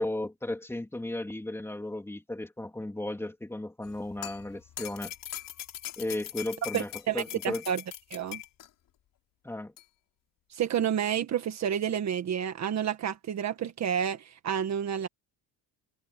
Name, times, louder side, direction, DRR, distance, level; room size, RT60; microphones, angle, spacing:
voice 1, 0.0-5.1 6.0-7.6 9.4-9.7, left 1 dB, 5° left, 2.9 m, -35 dB
sound 1, 3.8-8.7 9.8-9.9, left 12 dB, 50° left, 4.6 m, -41 dB
voice 2, 6.7-7.8 8.1-8.4 10.5-15.1, right 9 dB, 40° right, 1.8 m, -30 dB
cardioid pair, 160°, 41 cm